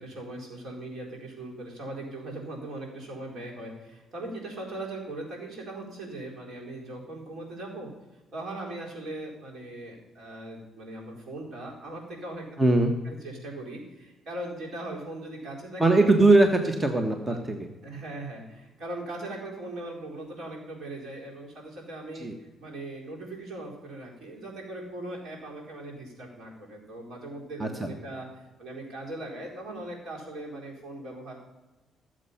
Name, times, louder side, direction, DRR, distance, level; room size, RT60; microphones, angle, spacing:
voice 1, 0.0-7.9 8.3-12.4 13.0-15.8 17.3-17.4 17.8-22.3 22.6-28.3 28.6-31.3, right 1 dB, 65° right, -2 dB, 4.2 m, -39 dB
voice 2, 12.6-12.9 15.8-17.7 22.1-22.3 27.6-27.9, right 2 dB, 20° right, 5 dB, 1.2 m, -21 dB
14.5 x 7.6 x 5.6 m, 1.1 s
cardioid pair, 90°, 0 cm